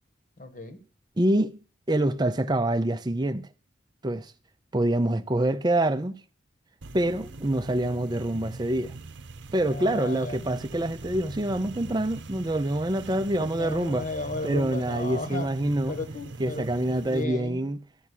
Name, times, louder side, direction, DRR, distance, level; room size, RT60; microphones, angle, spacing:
voice 1, 0.4-0.8 9.7-10.4 13.4-15.5 15.9-17.6, left 2 dB, 40° left, 1.4 m, -35 dB
voice 2, 1.2-1.6 1.9-3.5 4.0-4.3 4.7-6.2 6.9-9.0 9.5-14.1 14.4-16.0 16.4-17.8, right 1 dB, 20° right, 0.5 m, -26 dB
sound 1, 6.8-17.2, right 3 dB, 70° right, 0.8 m, -42 dB
12.0 x 6.0 x 8.4 m
head